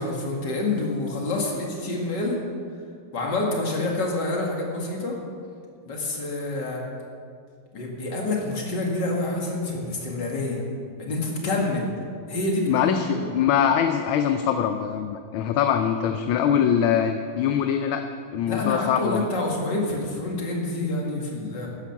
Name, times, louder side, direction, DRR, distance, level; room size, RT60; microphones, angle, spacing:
voice 1, 0.0-2.4 3.1-5.2 5.8-6.8 7.7-10.6 11.0-11.9 12.3-13.2 18.5-21.7, left 2 dB, 55° left, -1 dB, 2.6 m, -27 dB
voice 2, 12.7-18.1 18.3-19.3, left 8 dB, 80° left, 6 dB, 1.5 m, -23 dB
13.0 x 10.0 x 5.9 m, 2.2 s
omnidirectional pair, 2.3 m